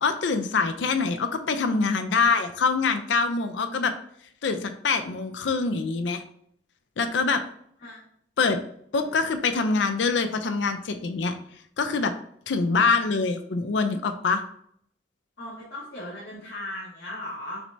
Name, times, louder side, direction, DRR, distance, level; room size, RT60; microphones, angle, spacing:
voice 1, 0.0-3.9 4.4-6.2 7.0-7.4 8.4-8.6 8.9-11.3 11.8-12.1 12.5-14.4, left 4 dB, 75° left, 8 dB, 0.5 m, -24 dB
voice 2, 15.4-17.6, left 1 dB, 60° left, -8 dB, 1.5 m, -37 dB
5.9 x 3.3 x 2.7 m, 0.67 s
head